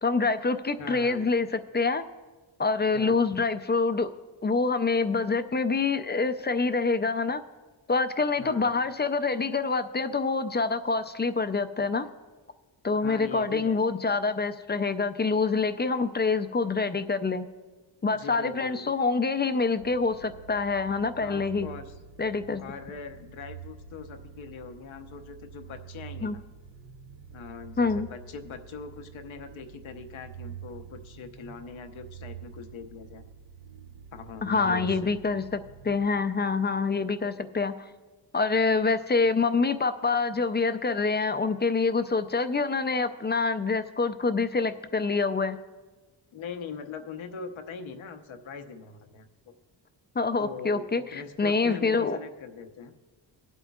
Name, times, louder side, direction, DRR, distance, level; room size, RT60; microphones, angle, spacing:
voice 1, 0.0-2.0 2.6-4.1 4.4-7.4 7.9-12.1 12.8-17.5 18.0-21.7 22.2-22.6 26.2-26.4 27.8-28.1 34.4-37.8 38.3-45.6 50.2-52.2, left 4 dB, 25° left, 10 dB, 0.4 m, -26 dB
voice 2, 0.8-1.2 2.9-3.2 8.4-8.7 13.0-13.8 18.1-18.9 21.2-21.9 22.6-26.4 27.3-33.2 34.1-35.0 46.3-49.3 50.4-52.9, left 5 dB, 80° left, 6 dB, 1.0 m, -41 dB
sound 1, 19.7-36.6, right 8 dB, 65° right, 0.7 m, -47 dB
24.0 x 8.2 x 2.4 m, 1.3 s
cardioid pair, 95°, 47 cm